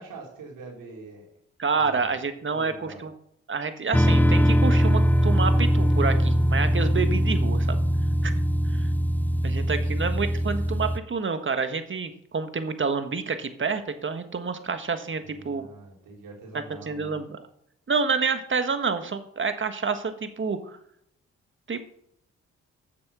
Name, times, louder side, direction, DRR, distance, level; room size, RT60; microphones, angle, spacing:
voice 1, 0.0-1.4 1.7-2.2 2.5-3.0 9.7-10.1 15.3-17.2, right 3 dB, 85° right, -1 dB, 3.4 m, -44 dB
voice 2, 1.6-3.1 3.5-7.8 8.2-8.3 8.6-8.9 9.4-15.7 16.5-17.4 17.9-20.8 21.7-21.8, right 5 dB, 40° right, 9 dB, 1.6 m, -28 dB
sound 1, 3.9-11.0, equal, 5° left, 0.6 m, -22 dB
7.5 x 7.1 x 6.8 m, 0.72 s
supercardioid pair, 55°, 31 cm